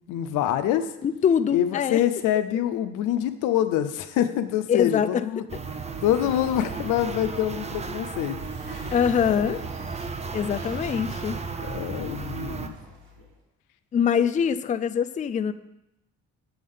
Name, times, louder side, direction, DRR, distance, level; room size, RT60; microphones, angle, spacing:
voice 1, 0.1-0.9 1.5-5.4 6.0-8.4 8.7-8.9 9.2-9.6 11.6-12.8, left 11 dB, 90° left, 11 dB, 0.6 m, -26 dB
voice 2, 1.0-2.0 4.7-5.2 8.9-9.6 10.3-11.4 13.9-15.5, left 7 dB, 25° left, 12 dB, 0.3 m, -23 dB
sound 1, 5.5-12.7, right 5 dB, 20° right, 0.5 m, -34 dB
sound 2, 8.4-13.4, left 1 dB, 85° right, 2.5 m, -47 dB
8.6 x 3.5 x 5.5 m, 0.87 s
cardioid pair, 90°, 30 cm